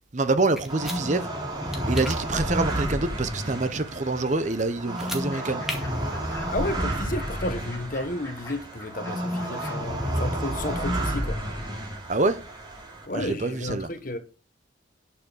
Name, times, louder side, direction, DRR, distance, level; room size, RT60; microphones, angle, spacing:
voice 1, 0.1-1.3 1.9-5.6 12.1-12.4 13.1-13.9, right 2 dB, 40° right, 0.8 m, -26 dB
sound 1, 0.6-1.0 1.7-2.2 4.9-5.2 5.6-5.8, equal, ahead, 2.0 m, -34 dB
sound 2, 0.7-13.1, right 1 dB, 25° right, 2.9 m, -31 dB
Fowl / Bird, 5.1-11.3, left 1 dB, 15° left, 3.6 m, -46 dB
voice 2, 6.5-11.4 13.1-14.2, left 1 dB, 45° left, 1.3 m, -32 dB
10.5 x 6.0 x 6.3 m
head